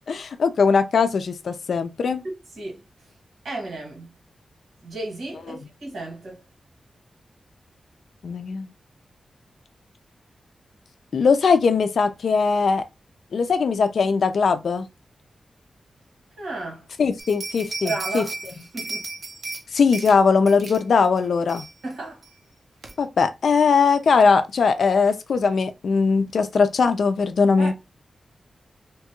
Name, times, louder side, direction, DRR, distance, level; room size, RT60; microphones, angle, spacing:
voice 1, 0.1-2.2 5.5-5.6 8.2-8.7 11.1-12.8 13.3-14.9 17.0-18.2 19.7-21.6 23.0-27.7, left 5 dB, 70° left, 0.4 m, -20 dB
voice 2, 2.2-2.8 3.4-4.1 4.8-6.4 16.4-16.9 17.8-19.1 21.8-22.2 27.6-27.7, right 2 dB, 80° right, 1.8 m, -33 dB
sound 1, 17.2-19.6 19.9-20.2 20.5-20.8 21.2-21.3 21.5-21.9 22.2-22.3 22.8-22.9, right 3 dB, 55° right, 0.6 m, -34 dB
2.9 x 2.3 x 2.9 m
wide cardioid pair, 150°, 0 cm